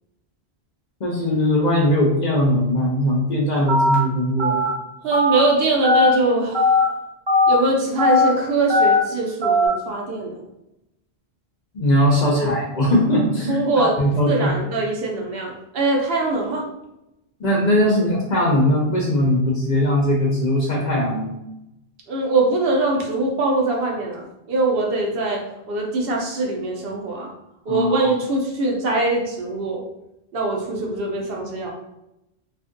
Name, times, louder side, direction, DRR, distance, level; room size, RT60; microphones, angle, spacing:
voice 1, 1.0-4.6 11.7-14.5 17.4-21.3 27.7-28.1, left 1 dB, 50° left, -3 dB, 0.6 m, -20 dB
Telephone, 3.7-3.9 4.4-4.7 5.1-5.4 5.8-6.1 6.5-6.8 7.3-7.5 8.0-8.2 8.7-9.0 9.4-9.7, left 2 dB, 30° right, 0.6 m, -17 dB
voice 2, 5.0-6.7 7.5-10.4 12.3-12.6 13.5-13.9 14.2-16.6 17.8-18.0 22.1-25.4 25.7-27.3 27.7-29.8 30.3-31.7, right 2 dB, 65° right, 0 dB, 0.8 m, -22 dB
2.6 x 2.4 x 2.5 m, 0.87 s
omnidirectional pair, 1.1 m